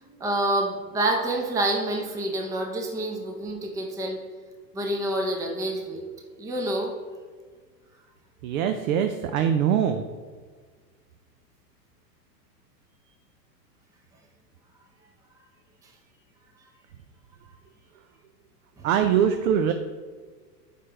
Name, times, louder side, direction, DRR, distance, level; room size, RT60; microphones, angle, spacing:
voice 1, 0.0-4.2 4.7-6.0 6.4-6.9 18.8-18.9, right 1 dB, 5° right, 1 dB, 0.6 m, -27 dB
voice 2, 8.4-10.1 18.8-19.7, right 8 dB, 55° right, 7 dB, 0.6 m, -23 dB
6.6 x 5.1 x 4.4 m, 1.5 s
hypercardioid pair, 120°, 49 cm